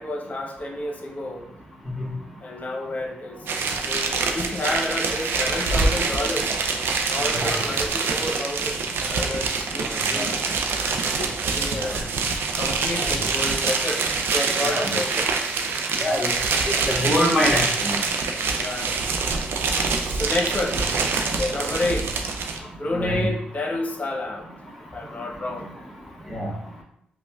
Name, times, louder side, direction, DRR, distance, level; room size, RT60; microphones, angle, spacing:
voice 1, 0.0-1.4 2.4-6.5 7.1-10.4 11.4-12.1 12.3-15.3 18.5-19.2 20.1-20.8 21.4-22.2 22.6-24.5 24.9-25.7, left 2 dB, 40° left, 1 dB, 0.8 m, -30 dB
sound 1, 3.5-22.6, right 4 dB, 80° right, 0.4 m, -25 dB
voice 2, 9.9-10.3 11.9-12.0 13.0-13.1 14.6-14.9 16.0-16.3 16.9-18.0 20.3-20.4 22.9-23.3 26.3-26.5, equal, 5° left, -3 dB, 1.4 m, -25 dB
5.1 x 2.1 x 2.3 m, 0.75 s
cardioid pair, 55°, 4 cm